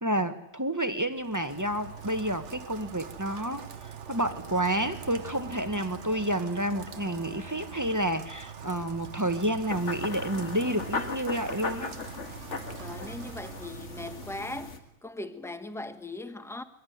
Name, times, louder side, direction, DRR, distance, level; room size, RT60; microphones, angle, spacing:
voice 1, 0.0-12.0, right 1 dB, 15° right, 1.3 m, -30 dB
Rain, 1.1-14.9, right 7 dB, 80° right, 1.6 m, -44 dB
Bowed string instrument, 4.2-8.2, right 2 dB, 35° right, 1.8 m, -48 dB
sound 1, 9.7-14.8, left 4 dB, 90° left, 2.0 m, -38 dB
voice 2, 12.8-14.8 15.0-16.6, left 2 dB, ahead, 1.2 m, -39 dB
23.0 x 17.5 x 9.4 m
omnidirectional pair, 1.2 m